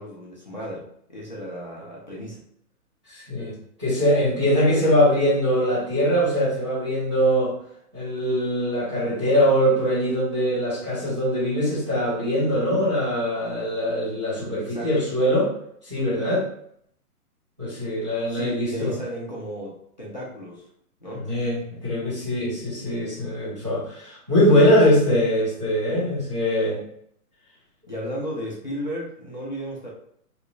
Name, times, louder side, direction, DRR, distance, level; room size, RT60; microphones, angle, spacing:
voice 1, 0.0-2.4 14.6-15.0 18.3-20.7 21.0-21.2 24.5-24.8 27.9-29.9, equal, 30° left, -6 dB, 0.4 m, -34 dB
voice 2, 3.1-3.5 3.8-7.5 7.9-15.5 15.8-16.5 17.6-19.0 21.2-26.8, equal, 20° right, -8 dB, 0.5 m, -22 dB
2.9 x 2.2 x 3.6 m, 0.68 s
hypercardioid pair, 170°, 46 cm